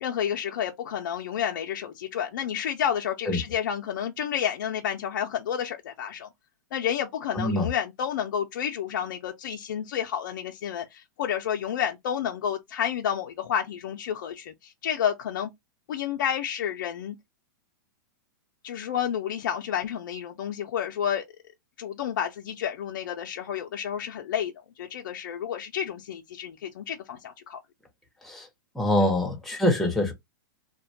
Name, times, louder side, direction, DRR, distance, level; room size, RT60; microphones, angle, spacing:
voice 1, 0.0-6.3 6.7-15.5 15.9-17.2 18.6-21.2 21.8-27.6, left 9 dB, 70° left, 0.5 m, -30 dB
voice 2, 7.3-7.7 28.2-28.5 28.7-30.1, left 1 dB, ahead, 0.7 m, -24 dB
2.4 x 2.2 x 2.6 m
hypercardioid pair, 145°, 11 cm